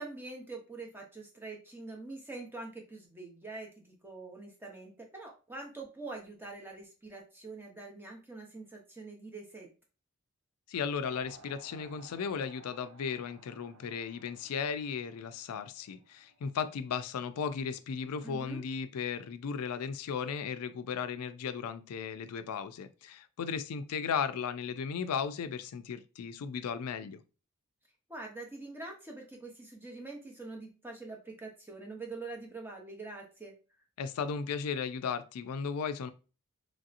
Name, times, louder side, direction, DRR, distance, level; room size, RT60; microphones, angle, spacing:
voice 1, 0.0-9.7 18.2-18.6 28.1-33.5, right 3 dB, 10° right, 0.7 m, -44 dB
voice 2, 10.7-27.2 34.0-36.1, left 6 dB, 85° left, 0.4 m, -36 dB
sound 1, 11.0-16.9, right 3 dB, 80° right, 0.6 m, -58 dB
3.1 x 2.7 x 2.5 m
head